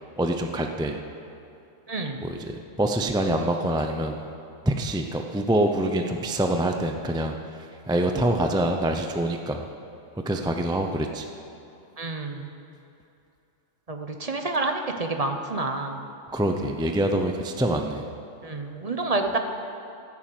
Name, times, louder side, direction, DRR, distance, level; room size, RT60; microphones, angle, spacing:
voice 1, 0.2-1.0 2.2-2.5 2.8-4.2 4.7-7.4 7.9-9.7 10.3-11.2 16.3-18.0, right 1 dB, 5° right, 4 dB, 0.3 m, -25 dB
voice 2, 1.9-2.3 12.0-12.5 13.9-16.1 18.4-19.4, right 2 dB, 30° right, 4 dB, 0.9 m, -28 dB
16.0 x 7.3 x 7.7 m, 2.8 s
omnidirectional pair, 1.4 m